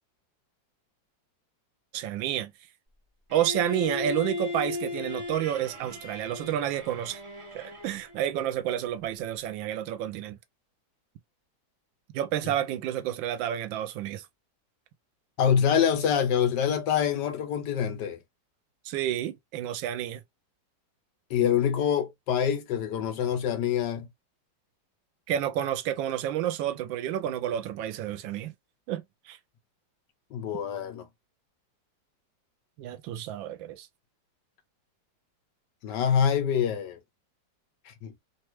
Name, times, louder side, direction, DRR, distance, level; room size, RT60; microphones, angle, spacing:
voice 1, 1.9-2.5 3.3-7.2 7.5-10.4 12.1-14.3 18.8-20.2 25.3-28.5 28.9-29.4 32.8-33.9, right 11 dB, 85° right, 1.3 m, -30 dB
Bowed string instrument, 3.3-8.2, left 2 dB, 30° right, 0.5 m, -36 dB
voice 2, 15.4-18.2 21.3-24.1 30.3-31.1 35.8-37.0 37.8-38.1, left 8 dB, 70° left, 1.2 m, -25 dB
3.2 x 2.3 x 3.0 m
omnidirectional pair, 2.1 m